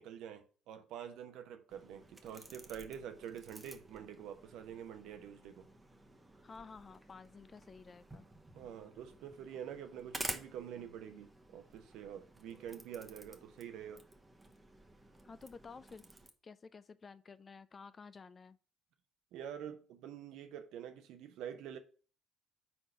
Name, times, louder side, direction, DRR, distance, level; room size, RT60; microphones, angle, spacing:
voice 1, 0.0-5.7 8.5-14.0 19.3-21.8, right 9 dB, 65° right, 0.9 m, -47 dB
sound 1, 1.7-16.3, right 2 dB, 15° right, 1.0 m, -51 dB
voice 2, 6.4-8.2 15.2-16.0 16.4-18.6, left 5 dB, 35° left, 0.5 m, -52 dB
4.5 x 4.3 x 5.5 m
hypercardioid pair, 55°, 0 cm